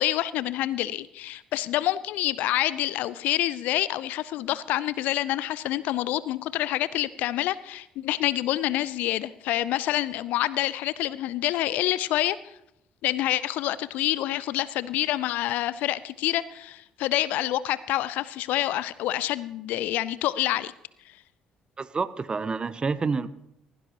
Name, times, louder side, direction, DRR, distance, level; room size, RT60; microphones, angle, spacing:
voice 1, 0.0-12.4 13.0-20.7 21.1-21.2, left 14 dB, 60° left, 18 dB, 0.4 m, -27 dB
voice 2, 21.8-23.3, right 4 dB, 30° right, 15 dB, 0.7 m, -28 dB
16.5 x 15.5 x 2.9 m, 0.80 s
figure-of-eight pair, 50°, 3 cm